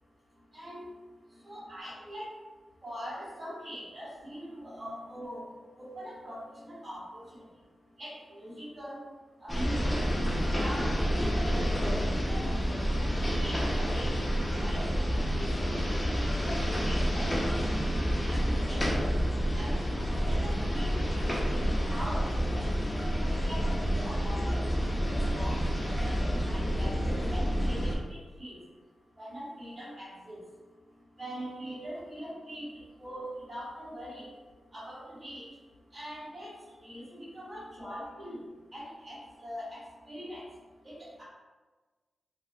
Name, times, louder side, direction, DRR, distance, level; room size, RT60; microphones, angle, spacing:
voice 1, 0.5-0.8 1.4-2.3 2.8-5.4 5.8-7.3 8.0-9.0 9.4-10.3 10.6-14.8 15.1-17.7 18.3-19.1 19.5-21.6 21.9-23.7 24.0-27.0 27.3-28.6 29.2-30.4 31.2-34.3 34.7-35.5 35.9-36.5 36.8-38.4 38.7-39.8 40.1-40.4 40.8-41.2, equal, 45° right, -9 dB, 1.5 m, -42 dB
sound 1, 9.5-28.0, equal, 25° left, 0.6 m, -29 dB
3.4 x 2.3 x 2.2 m, 1.3 s
cardioid pair, 55°, 0 cm